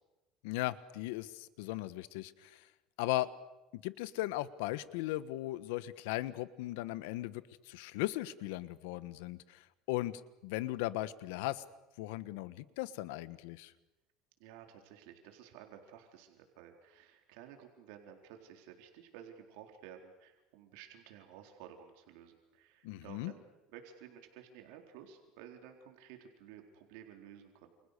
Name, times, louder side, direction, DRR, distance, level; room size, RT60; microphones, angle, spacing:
voice 1, 0.4-2.7 3.0-3.3 3.7-11.6 12.0-13.7 22.8-23.3, left 17 dB, 90° left, 15 dB, 1.4 m, -37 dB
voice 2, 14.4-23.4 23.7-27.7, right 9 dB, 80° right, 4 dB, 4.1 m, -54 dB
29.0 x 29.0 x 6.8 m, 1.0 s
cardioid pair, 145°, 0 cm